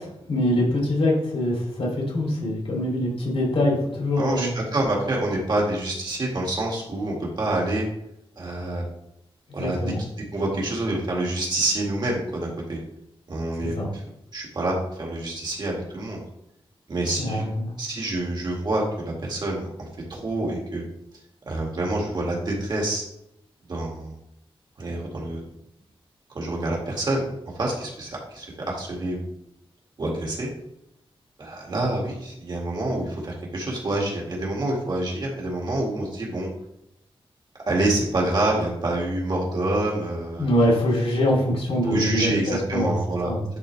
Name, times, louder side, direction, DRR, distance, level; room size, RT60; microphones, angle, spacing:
voice 1, 0.3-4.5 9.6-10.0 13.8-13.9 17.2-17.7 40.4-43.0 43.2-43.5, left 1 dB, 75° left, -3 dB, 2.7 m, -23 dB
voice 2, 4.2-7.9 8.4-8.8 9.5-9.8 10.3-12.8 13.3-13.7 14.3-16.2 16.9-17.4 17.8-20.8 21.5-23.0 23.7-24.1 24.8-25.4 26.3-27.3 27.6-29.3 30.0-30.5 31.4-36.5 37.7-40.7 41.9-43.3, right 2 dB, 50° right, -2 dB, 2.0 m, -27 dB
10.5 x 4.0 x 3.3 m, 0.79 s
wide cardioid pair, 175°, 10 cm